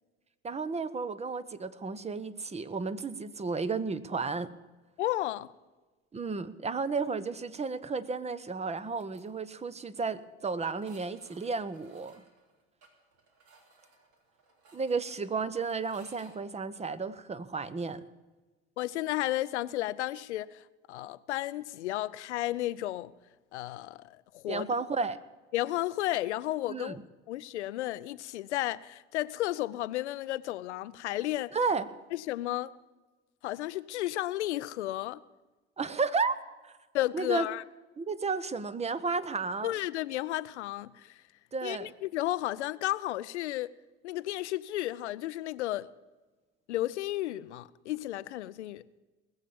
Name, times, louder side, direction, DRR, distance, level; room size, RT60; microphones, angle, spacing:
voice 1, 0.4-4.5 6.1-12.2 14.7-18.0 24.5-25.2 26.7-27.0 31.5-31.9 35.8-36.4 36.6-36.8 37.1-37.5 38.0-39.7 41.5-41.9, right 4 dB, 20° right, 0.9 m, -33 dB
voice 2, 5.0-5.5 18.8-23.1 23.5-24.7 25.5-27.0 27.3-31.6 32.1-32.7 33.4-35.2 36.9-37.6 39.6-41.2 41.6-43.7 44.0-45.9 46.7-49.0, left 15 dB, 85° left, 0.6 m, -33 dB
sound 1, 8.7-9.2 9.5-9.6 9.9-10.0 10.7-16.3, right 3 dB, 55° right, 3.2 m, -60 dB
20.0 x 7.3 x 7.0 m
hypercardioid pair, 75°, 34 cm